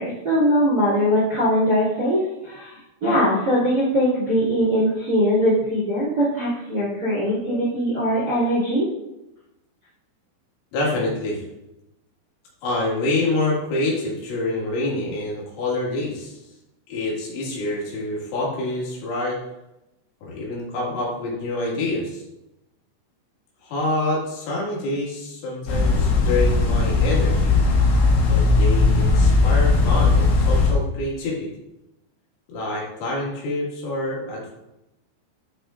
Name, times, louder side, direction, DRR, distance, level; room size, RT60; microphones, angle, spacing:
voice 1, 0.0-2.7 3.0-8.9, equal, 40° right, -7 dB, 1.3 m, -21 dB
voice 2, 10.7-11.4 12.6-16.4 16.9-19.4 20.2-22.2 23.6-27.6 28.2-31.5 32.5-34.5, left 2 dB, 80° left, -4 dB, 4.5 m, -26 dB
sound 1, 25.7-30.7, left 3 dB, 65° left, 2.7 m, -18 dB
12.0 x 5.7 x 2.5 m, 0.92 s
omnidirectional pair, 5.7 m